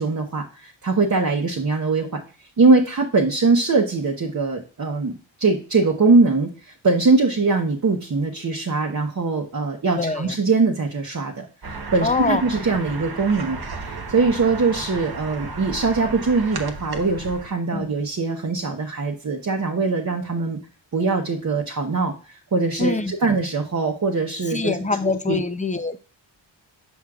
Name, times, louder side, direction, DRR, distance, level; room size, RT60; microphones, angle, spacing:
voice 1, 0.0-2.2 2.6-20.6 20.9-24.8 25.0-25.4, right 3 dB, 40° right, 1 dB, 0.9 m, -22 dB
voice 2, 10.0-10.3 12.0-12.4 17.7-17.9 22.8-23.1 24.5-26.1, left 4 dB, 15° left, 10 dB, 0.6 m, -24 dB
sound 1, 11.6-17.5, right 3 dB, 55° right, 1.2 m, -34 dB
7.1 x 6.3 x 2.4 m, 0.36 s
wide cardioid pair, 130°, 46 cm